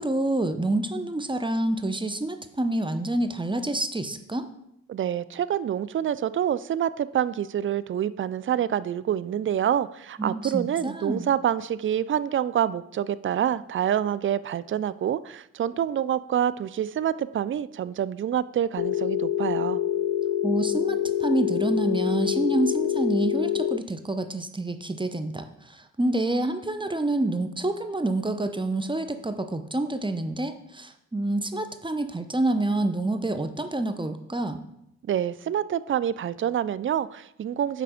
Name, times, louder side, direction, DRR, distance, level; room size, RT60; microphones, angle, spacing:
voice 1, 0.0-4.5 10.2-11.3 20.4-34.6, right 2 dB, 15° right, 8 dB, 0.8 m, -27 dB
voice 2, 4.9-19.8 35.1-37.8, right 10 dB, 40° right, 17 dB, 0.4 m, -27 dB
Telephone, 18.8-23.8, left 11 dB, 60° left, 0.6 m, -26 dB
8.6 x 3.3 x 5.1 m, 0.79 s
supercardioid pair, 40°, 32 cm